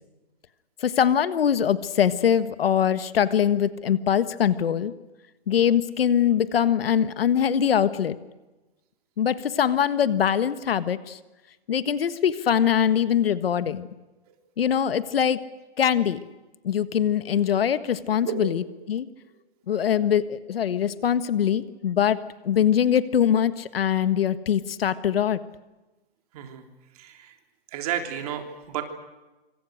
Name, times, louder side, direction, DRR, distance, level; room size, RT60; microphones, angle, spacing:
voice 1, 0.8-4.9 5.5-8.2 9.2-11.2 11.7-13.9 14.6-15.4 15.8-16.2 16.6-19.1 19.7-22.2 22.4-25.4, left 9 dB, 65° left, 13 dB, 1.6 m, -22 dB
voice 2, 26.3-26.7 27.0-27.3 27.7-28.8, right 10 dB, 35° right, 5 dB, 3.5 m, -31 dB
25.5 x 25.0 x 6.4 m, 1.1 s
hypercardioid pair, 160°, 31 cm